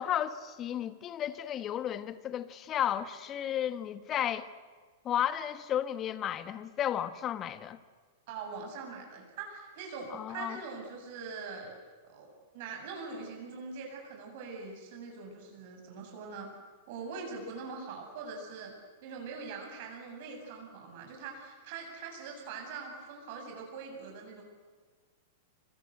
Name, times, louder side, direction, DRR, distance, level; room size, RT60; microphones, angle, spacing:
voice 1, 0.0-4.5 5.0-7.8 10.1-10.6, left 10 dB, 30° left, 1.6 m, -33 dB
voice 2, 8.3-11.7 12.0-16.5 16.9-18.7 19.0-24.4, right 4 dB, 55° right, 7.4 m, -43 dB
26.5 x 26.0 x 8.1 m
figure-of-eight pair, 100°, 0 cm